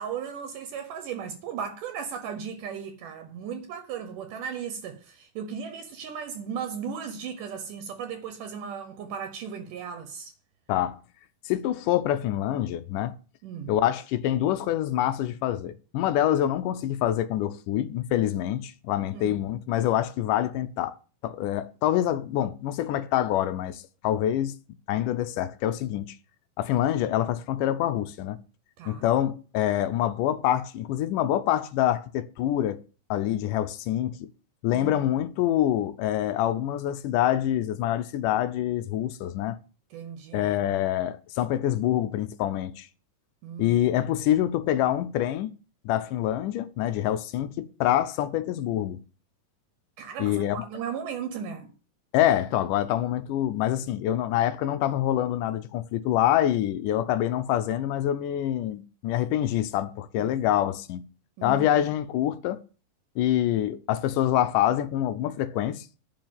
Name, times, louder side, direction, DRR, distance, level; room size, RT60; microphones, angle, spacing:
voice 1, 0.0-10.3 13.4-13.7 19.1-19.4 28.8-29.1 34.7-35.0 39.9-40.6 43.4-44.0 50.0-51.7 60.2-60.6 61.4-61.8, right 7 dB, 75° right, 2.4 m, -36 dB
voice 2, 11.4-13.1 13.7-21.0 21.2-24.6 24.9-26.2 26.6-28.4 28.9-32.8 33.1-34.2 34.6-39.6 40.3-42.9 43.6-45.5 45.9-49.0 50.2-50.7 52.1-61.0 61.4-62.6 63.2-65.9, left 12 dB, 80° left, 2.0 m, -26 dB
10.5 x 4.8 x 7.4 m
omnidirectional pair, 4.0 m